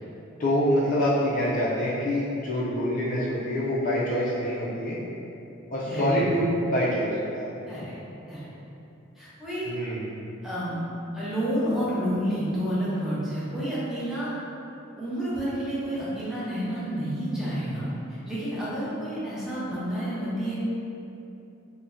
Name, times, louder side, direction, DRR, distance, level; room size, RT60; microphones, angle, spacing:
voice 1, 0.4-5.0 5.7-7.5 9.6-10.2, equal, 40° left, -8 dB, 0.4 m, -26 dB
voice 2, 5.9-6.2 7.7-7.9 8.3-8.4 9.2-9.7 10.4-10.9 11.1-14.4 14.9-20.5, equal, ahead, -11 dB, 0.6 m, -30 dB
2.6 x 2.1 x 3.5 m, 2.8 s
head